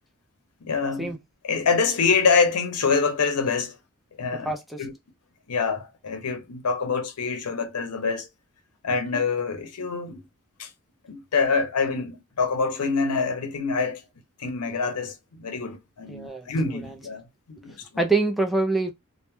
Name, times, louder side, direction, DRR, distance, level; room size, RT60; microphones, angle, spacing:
voice 1, 0.6-1.1 1.4-3.8 4.2-4.5 4.8-4.9 5.5-8.3 8.8-10.2 10.6-10.7 11.1-14.0 14.4-17.2 17.5-18.0, left 5 dB, 80° left, 0.6 m, -25 dB
voice 2, 4.4-4.8 16.1-16.9 18.0-18.9, right 3 dB, ahead, 0.3 m, -25 dB
2.2 x 2.0 x 2.9 m
head